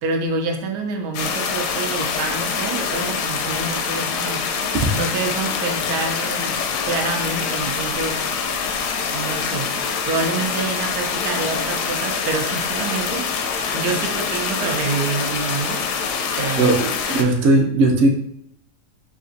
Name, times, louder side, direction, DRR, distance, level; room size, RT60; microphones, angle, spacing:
voice 1, 0.0-4.4 4.9-6.6 6.8-8.2 9.1-9.7 10.0-15.8 16.4-16.7, right 4 dB, 90° right, 3 dB, 1.3 m, -27 dB
sound 1, 1.1-17.2, left 6 dB, 80° left, 1.1 m, -25 dB
voice 2, 16.6-18.1, right 2 dB, 65° right, 2 dB, 0.6 m, -17 dB
5.7 x 2.4 x 2.6 m, 0.73 s
omnidirectional pair, 1.7 m